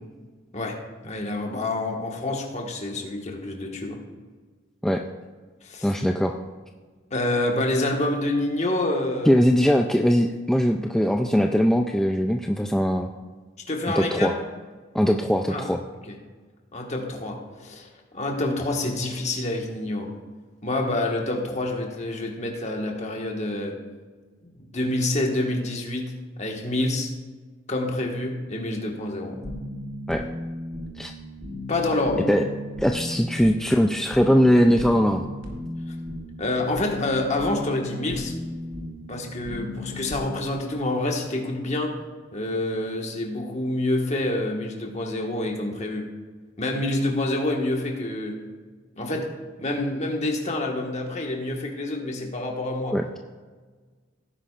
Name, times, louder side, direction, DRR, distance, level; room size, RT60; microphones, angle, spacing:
voice 1, 1.0-4.0 5.6-5.9 7.1-9.3 13.7-14.3 15.5-15.7 16.7-20.1 20.6-23.7 24.6-26.1 26.4-27.1 27.7-29.4 31.7-32.3 35.9-36.0 36.4-38.3 39.1-42.0 42.3-46.1 46.6-48.4 49.0-49.3 49.6-53.0, left 2 dB, 35° left, 1 dB, 1.5 m, -27 dB
voice 2, 5.8-6.4 9.3-13.1 14.0-14.4 14.9-15.8 30.1-30.3 31.0-31.1 32.3-32.4 32.8-35.3 52.9-53.0, equal, ahead, 3 dB, 0.3 m, -21 dB
sound 1, 29.3-40.2, left 1 dB, 80° right, 2.5 m, -36 dB
17.0 x 9.9 x 2.5 m, 1.4 s
head